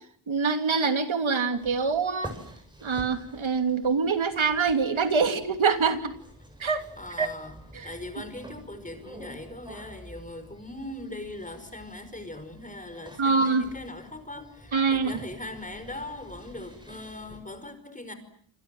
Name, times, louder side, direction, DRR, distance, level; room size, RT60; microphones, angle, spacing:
voice 1, 0.3-2.3 2.8-6.1 6.6-6.8 7.2-7.3 13.2-13.6 14.7-15.2, right 5 dB, 80° right, 2.9 m, -24 dB
sound 1, 1.5-17.4, equal, 10° right, 7.7 m, -48 dB
voice 2, 7.0-7.6 7.8-18.1, left 1 dB, 15° left, 5.2 m, -40 dB
28.0 x 26.5 x 7.7 m
wide cardioid pair, 125°, 47 cm